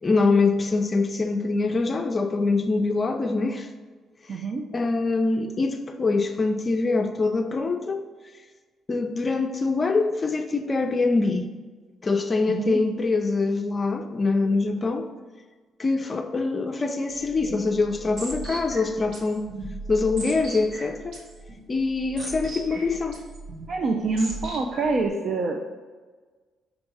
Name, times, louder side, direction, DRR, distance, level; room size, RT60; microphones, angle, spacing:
voice 1, 0.0-3.7 4.3-4.4 4.7-8.1 8.9-11.5 12.0-15.1 15.8-19.5 19.9-21.2 21.7-23.2, left 3 dB, 30° left, 5 dB, 0.5 m, -24 dB
voice 2, 4.3-4.7 12.5-12.8 23.7-25.6, right 3 dB, 55° right, 3 dB, 0.6 m, -26 dB
sound 1, 17.1-25.1, right 2 dB, 80° right, 1.6 m, -39 dB
5.8 x 3.5 x 5.5 m, 1.4 s
cardioid pair, 90°, 0 cm